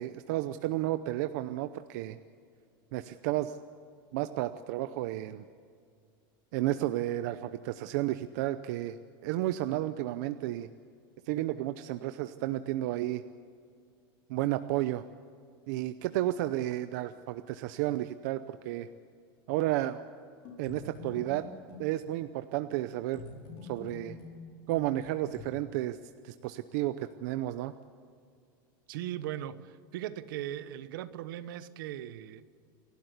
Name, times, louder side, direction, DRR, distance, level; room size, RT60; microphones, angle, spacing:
voice 1, 0.0-2.2 2.9-3.6 4.1-5.4 6.5-10.7 11.2-13.2 14.3-15.0 15.7-18.9 19.5-20.0 20.6-21.4 21.8-23.2 23.6-24.2 24.7-26.0 26.2-27.7, right 15 dB, 50° right, 0.7 m, -32 dB
sound 1, 20.4-21.9 23.1-25.4, left 3 dB, 40° left, 5.5 m, -46 dB
voice 2, 28.9-32.5, right 12 dB, 70° right, 1.1 m, -39 dB
29.5 x 12.5 x 8.3 m
supercardioid pair, 175°, 12 cm